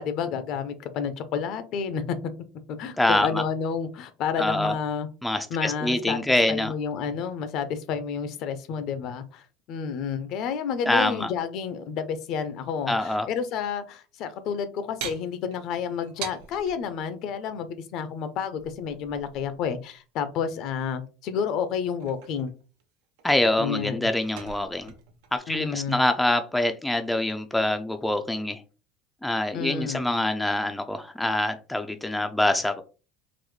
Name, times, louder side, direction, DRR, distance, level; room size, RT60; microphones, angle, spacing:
voice 1, 0.0-2.3 2.7-5.1 5.5-6.2 6.5-22.5 23.6-24.1 25.5-26.0 29.5-30.1, left 6 dB, 60° left, 11 dB, 0.5 m, -30 dB
voice 2, 3.0-3.4 4.4-4.7 5.2-6.7 10.9-11.3 12.9-13.3 23.2-24.9 25.3-28.6 29.2-32.8, left 1 dB, 5° left, 6 dB, 0.4 m, -25 dB
sound 1, 15.0-16.8 18.6-19.7 21.6-22.8 23.2-25.4, right 8 dB, 75° right, 0.7 m, -42 dB
3.9 x 2.1 x 3.1 m, 0.34 s
supercardioid pair, 115°, 0 cm